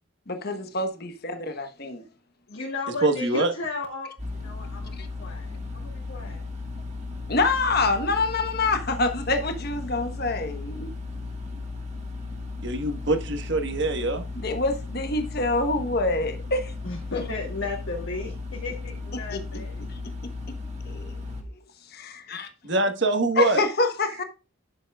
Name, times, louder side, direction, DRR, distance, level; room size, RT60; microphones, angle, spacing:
voice 1, 0.3-2.0 5.0-5.1 7.3-10.9 14.4-16.7 17.1-17.2 19.3-19.6 19.9-20.0 20.9-21.1 21.6-21.7 21.9-22.5 23.4-24.2, left 3 dB, 45° left, 1.2 m, -26 dB
voice 2, 2.5-6.4 16.8-19.8, left 3 dB, 65° left, 2.4 m, -35 dB
voice 3, 3.0-3.5 12.6-14.2 22.6-23.6, right 2 dB, 55° right, 1.4 m, -24 dB
sound 1, 4.2-21.4, left 3 dB, 35° right, 1.7 m, -36 dB
11.0 x 7.2 x 2.4 m
head